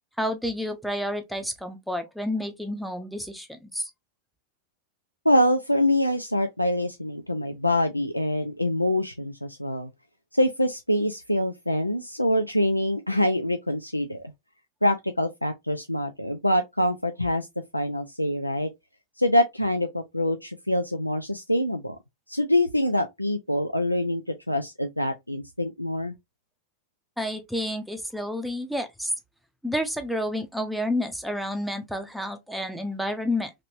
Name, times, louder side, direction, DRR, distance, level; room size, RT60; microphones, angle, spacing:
voice 1, 0.2-3.9 27.2-29.1 29.6-33.5, left 1 dB, ahead, 0.6 m, -30 dB
voice 2, 5.3-9.9 10.3-14.3 14.8-17.5 17.7-18.7 19.2-22.0 22.3-26.1, left 1 dB, 90° left, 0.3 m, -25 dB
3.0 x 2.9 x 2.5 m
figure-of-eight pair, 90°, 0 cm